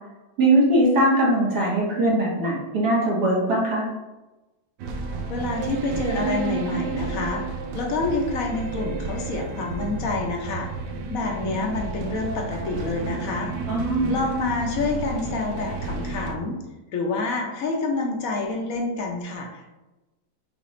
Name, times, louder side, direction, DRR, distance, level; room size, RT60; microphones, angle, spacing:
voice 1, 0.4-3.8 13.7-14.2, right 1 dB, 55° right, -4 dB, 1.8 m, -21 dB
sound 1, 4.8-16.3, right 4 dB, 75° right, 1.2 m, -31 dB
voice 2, 5.3-7.4 7.7-10.7 11.1-13.5 14.1-16.6 16.9-19.7, left 3 dB, 65° left, 0 dB, 0.9 m, -27 dB
6.6 x 2.5 x 3.1 m, 1.1 s
omnidirectional pair, 2.1 m